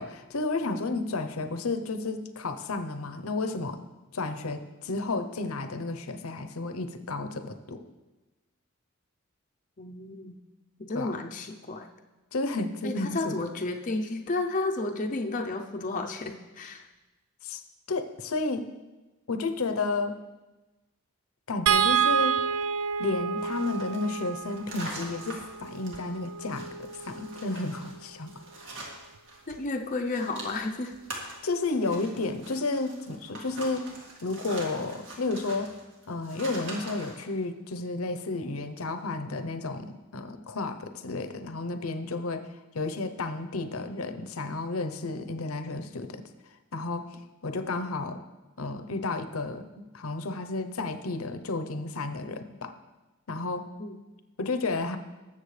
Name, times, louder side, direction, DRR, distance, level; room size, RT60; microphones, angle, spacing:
voice 1, 0.0-3.8 4.1-7.8 10.9-11.1 12.3-13.3 17.4-17.6 17.9-18.7 19.3-20.2 21.5-22.4 23.0-26.7 27.1-28.3 31.4-33.9 34.2-35.7 36.1-42.5 42.7-46.2 46.7-48.2 48.6-49.6 49.9-52.7 53.3-53.7 54.4-55.0, left 3 dB, 70° left, 9 dB, 0.8 m, -32 dB
voice 2, 9.8-10.4 10.8-11.9 12.8-16.8 29.5-30.9 31.2-31.4 53.8-54.0, left 2 dB, 35° left, 3 dB, 0.6 m, -32 dB
sound 1, 21.7-28.0 29.5-29.7 30.0-30.2, right 7 dB, 80° right, 0.4 m, -29 dB
sound 2, 23.4-29.5 29.8-37.3, right 2 dB, 55° right, 2.3 m, -43 dB
20.0 x 7.2 x 3.3 m, 1.1 s
head